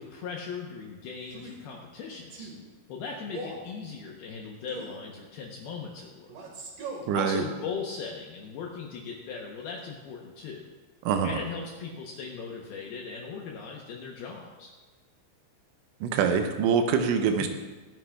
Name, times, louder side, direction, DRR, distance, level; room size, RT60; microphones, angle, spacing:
voice 1, 0.0-2.5 2.9-6.3 7.1-10.7 11.2-14.7 17.3-17.5, left 5 dB, 75° left, 0 dB, 2.3 m, -38 dB
Male speech man speaking, 1.2-1.6 2.3-2.6 3.3-3.7 4.7-5.0 6.3-7.1, right 2 dB, 60° right, 2.5 m, -40 dB
voice 2, 7.1-7.4 11.0-11.4 16.0-17.5, right 6 dB, 80° right, 6 dB, 3.1 m, -24 dB
23.0 x 9.6 x 2.3 m, 1.3 s
omnidirectional pair, 5.6 m